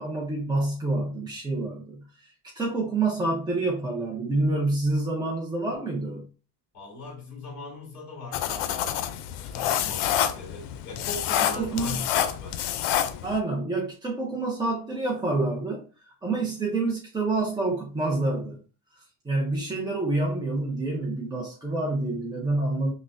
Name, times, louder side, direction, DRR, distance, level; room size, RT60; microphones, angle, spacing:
voice 1, 0.0-6.3 11.6-12.0 13.2-18.6 18.9-22.9, right 2 dB, 10° right, 0.5 m, -28 dB
voice 2, 6.7-9.1 9.4-12.6, left 2 dB, 40° left, 2.0 m, -39 dB
sound 1, 8.3-13.4, left 11 dB, 75° left, 0.5 m, -28 dB
5.7 x 2.1 x 2.5 m
cardioid pair, 150°, 43 cm